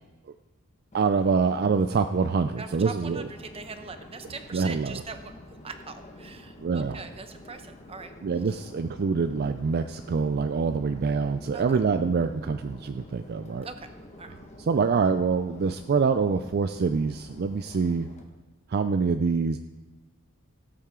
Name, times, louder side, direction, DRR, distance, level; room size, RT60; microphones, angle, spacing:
Subway metro underground, 0.9-18.2, left 1 dB, 30° left, 1.4 m, -48 dB
voice 1, 0.9-3.3 4.5-5.0 6.6-7.0 8.2-13.7 14.6-18.1 18.7-19.6, right 5 dB, 45° right, 9 dB, 0.4 m, -25 dB
voice 2, 2.6-8.1 8.5-8.6 11.5-11.6 13.6-13.9 14.2-14.3, right 4 dB, 25° right, 8 dB, 0.8 m, -42 dB
17.5 x 8.7 x 3.7 m, 1.2 s
head